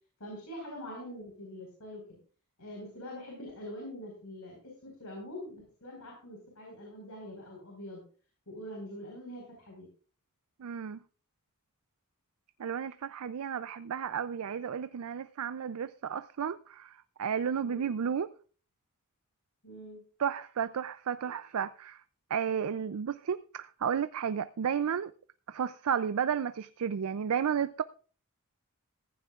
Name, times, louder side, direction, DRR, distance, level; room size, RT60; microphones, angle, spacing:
voice 1, 0.2-2.2 2.6-8.0 8.5-9.9 17.6-17.9 19.6-20.0, equal, 80° left, 4.7 m, -44 dB
voice 2, 10.6-11.0 12.6-18.3 20.2-22.0 22.3-25.1 25.5-27.8, right 7 dB, 70° right, 0.4 m, -32 dB
15.0 x 15.0 x 2.4 m
head